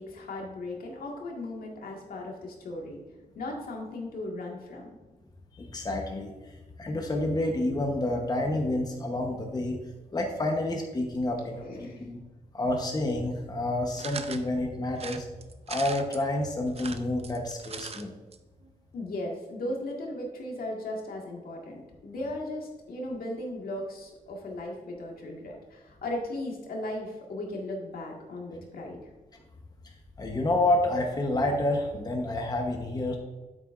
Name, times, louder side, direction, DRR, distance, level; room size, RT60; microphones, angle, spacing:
voice 1, 0.0-3.0 3.4-4.9 11.5-12.1 18.9-29.0, left 1 dB, 85° left, -1 dB, 1.7 m, -37 dB
voice 2, 5.6-9.8 10.1-12.2 12.5-15.3 15.7-18.1 29.8-29.9 30.2-33.2, left 1 dB, 25° left, 2 dB, 1.0 m, -29 dB
sound 1, 14.0-14.4 15.0-16.2 16.7-18.0 18.3-18.4 18.6-18.7, right 5 dB, 45° right, 0.5 m, -39 dB
9.0 x 8.1 x 2.5 m, 1.2 s
wide cardioid pair, 125°, 15 cm